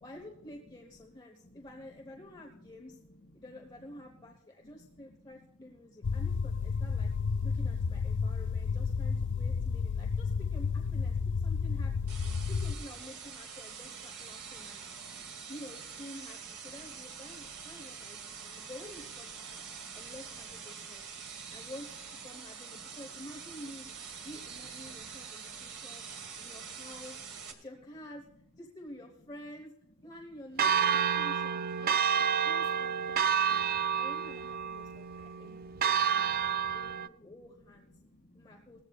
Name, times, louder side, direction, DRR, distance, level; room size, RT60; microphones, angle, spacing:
voice 1, 0.0-3.0 3.3-7.1 7.4-12.1 12.5-14.8 15.5-19.6 19.9-21.0 21.3-23.9 24.2-26.0 26.4-28.2 28.6-29.7 30.0-32.0 32.4-33.6 33.9-37.9 38.3-38.8, left 1 dB, 20° left, 1 dB, 1.1 m, -50 dB
voice 2, 2.3-2.7 5.0-5.1 8.1-8.2 12.4-12.5 14.6-15.5 17.3-17.4 17.6-17.8 18.2-18.6 19.5-20.1 20.7-20.9 21.2-21.6 24.8-26.7 33.7-34.0 34.9-35.0 35.3-35.8 36.4-37.1 38.0-38.8, left 1 dB, 35° left, 3 dB, 2.1 m, -61 dB
sound 1, 6.0-12.8, left 5 dB, 55° left, 0.4 m, -31 dB
sound 2, 12.1-27.5, right 6 dB, 80° right, 2.2 m, -45 dB
Church bell, 30.6-37.1, right 7 dB, 40° right, 0.4 m, -29 dB
18.5 x 14.5 x 2.4 m, 0.95 s
head